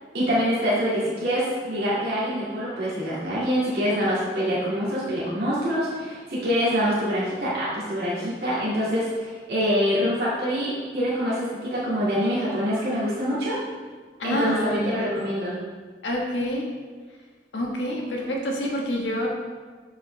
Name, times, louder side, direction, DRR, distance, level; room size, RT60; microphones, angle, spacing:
voice 1, 0.1-13.6 14.2-15.6, equal, 60° right, -9 dB, 2.0 m, -25 dB
voice 2, 14.2-15.1 16.0-16.7 17.5-19.3, left 1 dB, 90° left, -1 dB, 1.3 m, -27 dB
7.3 x 6.9 x 3.2 m, 1.5 s
head